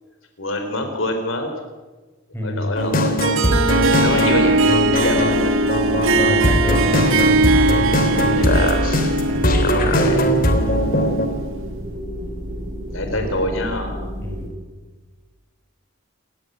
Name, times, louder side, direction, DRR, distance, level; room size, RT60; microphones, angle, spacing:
voice 1, 0.4-1.5 2.4-3.3 4.0-4.7 4.9-5.5 8.3-8.8 9.1-9.2 9.7-10.2 12.9-14.0, left 1 dB, 65° left, 5 dB, 4.0 m, -25 dB
voice 2, 2.3-2.8 6.1-8.4 9.2-10.2 13.1-13.3 14.2-14.5, left 1 dB, 10° left, 0 dB, 6.8 m, -29 dB
sound 1, 2.8-11.3, equal, 40° left, 3.5 m, -20 dB
Harp, 3.2-11.6, right 2 dB, 70° right, 2.2 m, -20 dB
sound 2, 3.9-14.5, equal, 35° right, 7.9 m, -31 dB
29.5 x 16.5 x 9.3 m, 1.3 s
head